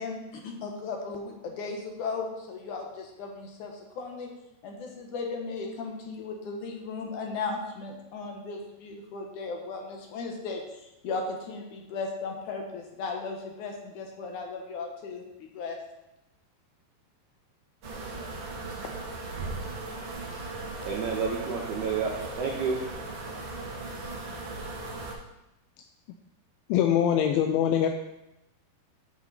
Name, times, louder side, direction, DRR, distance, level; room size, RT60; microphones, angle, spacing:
voice 1, 0.0-4.3 4.6-15.8, left 4 dB, 60° left, 1 dB, 2.3 m, -36 dB
sound 1, 17.8-25.1, right 2 dB, 50° right, 1.9 m, -37 dB
voice 2, 20.8-22.8, right 5 dB, 70° right, 0 dB, 1.8 m, -30 dB
voice 3, 26.7-27.9, left 9 dB, 80° left, 5 dB, 2.3 m, -23 dB
13.5 x 5.8 x 4.2 m, 0.91 s
omnidirectional pair, 4.7 m